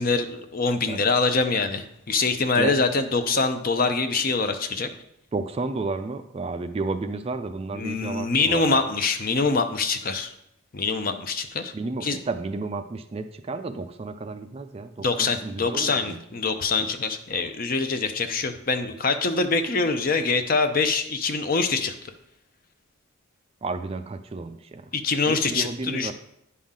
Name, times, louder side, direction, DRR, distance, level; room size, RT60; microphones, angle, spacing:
voice 1, 0.0-4.9 7.7-10.3 10.7-11.7 12.0-12.2 15.0-22.1 24.9-26.1, left 4 dB, 40° left, 8 dB, 0.6 m, -24 dB
voice 2, 5.3-8.9 11.7-16.2 23.6-24.9 25.3-26.1, right 3 dB, 25° right, 9 dB, 0.3 m, -32 dB
9.7 x 5.6 x 3.7 m, 0.76 s
head